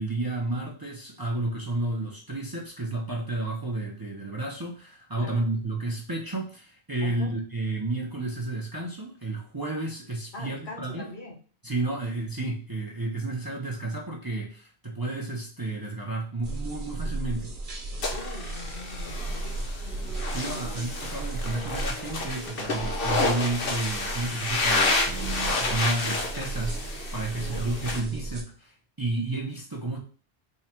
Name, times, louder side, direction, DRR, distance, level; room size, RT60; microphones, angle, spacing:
voice 1, 0.0-11.1 11.6-17.5 20.3-30.0, right 2 dB, 25° right, -2 dB, 0.6 m, -31 dB
voice 2, 7.0-7.3 10.3-11.4 18.1-19.6 20.4-21.1 27.4-27.7, left 2 dB, 80° left, -1 dB, 1.6 m, -41 dB
sound 1, 16.4-28.4, right 2 dB, 55° right, 1.0 m, -35 dB
sound 2, 18.0-28.0, left 3 dB, 60° left, 1.0 m, -30 dB
3.7 x 2.3 x 4.4 m, 0.40 s
omnidirectional pair, 1.1 m